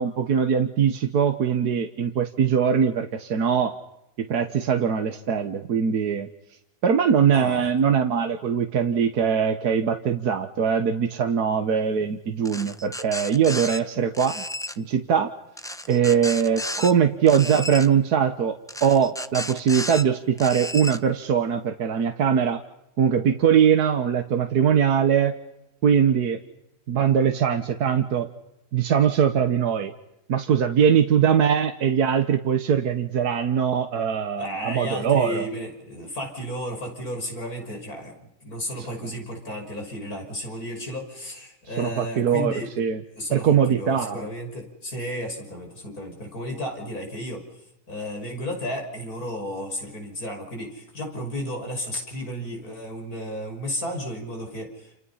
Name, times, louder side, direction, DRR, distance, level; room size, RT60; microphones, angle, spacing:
voice 1, 0.0-3.8 4.2-6.3 6.8-14.4 14.8-15.3 15.9-22.6 23.0-25.4 25.8-26.4 26.9-28.3 28.7-29.9 30.3-35.5 41.8-43.0 43.3-44.2, right 7 dB, 75° right, 6 dB, 1.8 m, -21 dB
voice 2, 7.3-7.7 34.4-42.7 43.1-47.6 47.9-55.0, equal, 65° left, 3 dB, 6.5 m, -33 dB
sound 1, 12.4-13.8 14.1-14.8 15.6-16.9 17.3-17.9 18.7-20.0 20.4-21.0, left 1 dB, 5° left, 0.4 m, -33 dB
30.0 x 29.5 x 5.7 m, 0.86 s
omnidirectional pair, 1.7 m